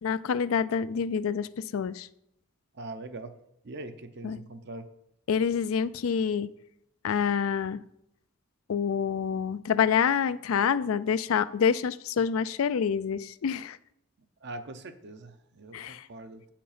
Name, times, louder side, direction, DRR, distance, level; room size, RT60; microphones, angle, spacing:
voice 1, 0.0-2.1 4.2-4.4 5.3-6.5 7.0-7.8 8.7-13.8 15.7-16.1, left 7 dB, 75° left, 15 dB, 0.4 m, -27 dB
voice 2, 2.8-3.3 3.6-4.8 14.4-16.5, right 2 dB, 55° right, 9 dB, 0.8 m, -42 dB
7.9 x 5.8 x 5.0 m, 0.79 s
head